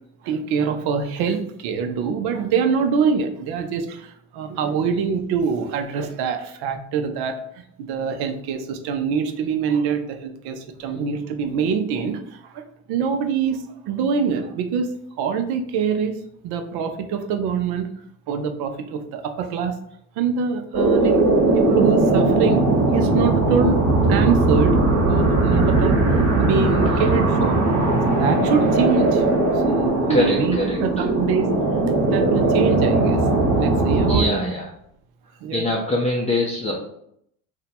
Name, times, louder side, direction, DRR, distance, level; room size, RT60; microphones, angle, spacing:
voice 1, 0.2-7.3 7.8-12.6 12.9-14.9 15.2-16.2 16.4-17.9 18.3-19.7 20.2-21.2 21.5-22.7 22.9-23.8 24.1-24.8 25.1-26.1 26.4-27.6 28.2-29.2 29.7-31.6 32.1-33.2 33.6-34.4 35.4-35.6, right 6 dB, 60° right, 5 dB, 0.6 m, -24 dB
sound 1, 20.7-34.2, right 2 dB, 40° right, 1.2 m, -19 dB
voice 2, 30.1-31.0 34.0-34.7 35.5-36.7, left 1 dB, 15° left, -2 dB, 0.5 m, -23 dB
2.8 x 2.2 x 4.1 m, 0.72 s
supercardioid pair, 90°, 43 cm